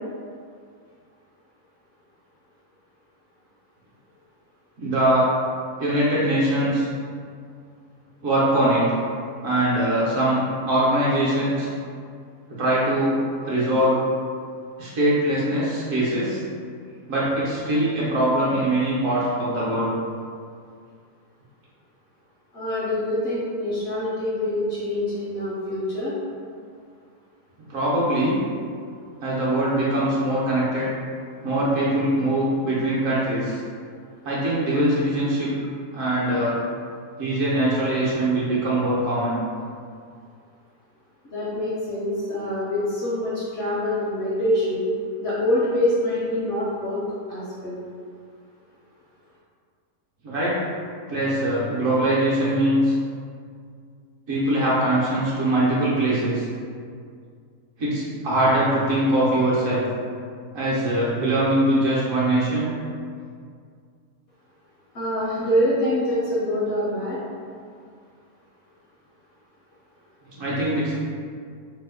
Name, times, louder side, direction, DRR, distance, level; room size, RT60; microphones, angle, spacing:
voice 1, 4.8-5.2 5.8-6.9 8.2-8.9 9.4-10.4 10.6-11.7 12.6-13.1 13.4-14.0 14.8-16.4 17.1-19.9 27.7-28.4 29.2-30.9 31.4-33.6 34.2-35.5 35.9-36.6 37.2-39.4 50.2-50.5 51.1-52.9 54.3-56.4 57.8-59.9 60.5-62.7 70.4-71.0, right 1 dB, 60° right, -7 dB, 1.0 m, -22 dB
voice 2, 22.5-26.1 41.3-44.9 45.2-47.0 47.3-47.8 64.9-67.2, left 1 dB, 60° left, -8 dB, 0.7 m, -25 dB
2.9 x 2.1 x 3.4 m, 2.2 s
omnidirectional pair, 1.7 m